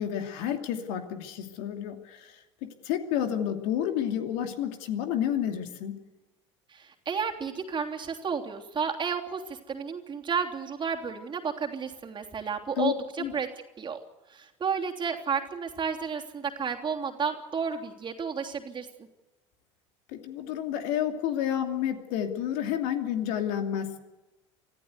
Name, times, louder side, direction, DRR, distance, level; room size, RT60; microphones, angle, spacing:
voice 1, 0.0-6.0 12.8-13.3 20.1-24.0, left 10 dB, 65° left, 5 dB, 2.7 m, -30 dB
voice 2, 6.7-12.9 13.3-13.5 13.8-14.0 14.3-18.9, right 6 dB, 30° right, 2 dB, 3.2 m, -32 dB
25.5 x 14.5 x 8.2 m, 1.1 s
hypercardioid pair, 75°, 16 cm